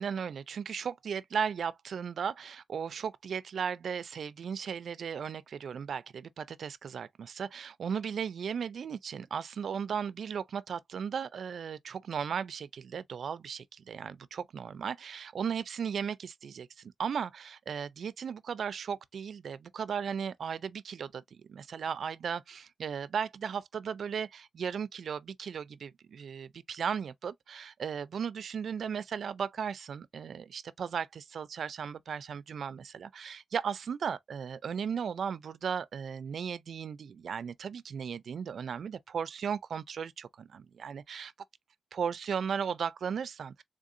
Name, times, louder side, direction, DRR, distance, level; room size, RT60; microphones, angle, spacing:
voice 1, 0.0-41.3 41.9-43.6, right 7 dB, 75° right, 0.4 m, -36 dB
3.6 x 3.6 x 2.5 m
wide cardioid pair, 145°, 0 cm